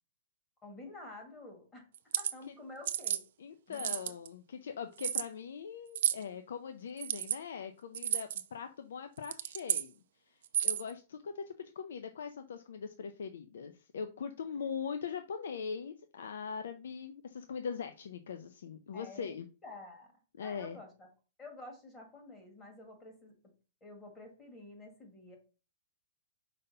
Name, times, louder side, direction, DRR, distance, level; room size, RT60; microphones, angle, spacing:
voice 1, 0.6-1.9 2.2-3.2 3.7-3.9 18.9-20.1 20.4-21.1 21.4-23.3 23.8-25.4, left 2 dB, 15° left, 2 dB, 1.9 m, -50 dB
sound 1, 1.9-2.3 2.9-3.2 3.7-4.3 5.0-5.3 5.9-6.2 7.0-7.4 7.9-8.4 9.2-9.9 10.4-10.9, right 11 dB, 60° right, 0.5 m, -32 dB
voice 2, 3.4-9.9 10.3-19.5 20.4-20.8, left 6 dB, 85° left, 8 dB, 0.7 m, -41 dB
5.1 x 4.1 x 5.5 m, 0.34 s
hypercardioid pair, 160°, 0 cm